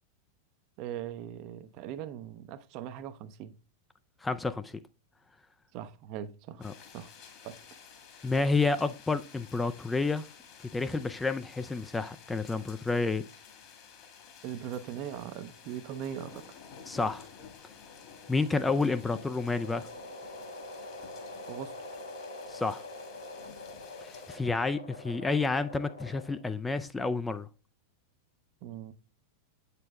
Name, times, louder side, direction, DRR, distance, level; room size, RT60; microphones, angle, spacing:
voice 1, 0.8-3.5 5.7-6.7 6.9-7.1 7.4-7.6 14.4-16.4 21.5-21.7 28.6-28.9, right 10 dB, 40° right, 0.6 m, -40 dB
voice 2, 4.2-4.7 6.6-6.7 8.2-10.2 10.7-13.2 16.9-17.2 18.3-19.9 22.5-22.8 24.0-27.5, left 3 dB, 10° left, 0.4 m, -30 dB
sound 1, 6.6-24.4, left 6 dB, 40° left, 1.7 m, -52 dB
sound 2, 18.8-26.6, left 2 dB, 80° left, 1.1 m, -45 dB
8.2 x 6.7 x 2.3 m
figure-of-eight pair, 90°, 0 cm